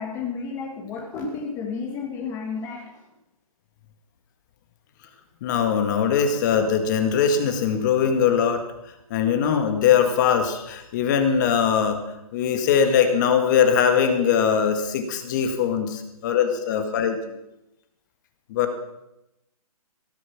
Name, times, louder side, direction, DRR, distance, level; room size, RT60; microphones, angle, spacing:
voice 1, 0.0-3.1, left 5 dB, 15° left, 1 dB, 1.4 m, -32 dB
voice 2, 5.4-8.7 9.1-12.0 12.3-17.2 18.5-18.7, left 7 dB, 30° left, 7 dB, 1.8 m, -21 dB
17.0 x 9.6 x 6.0 m, 0.89 s
hypercardioid pair, 155°, 19 cm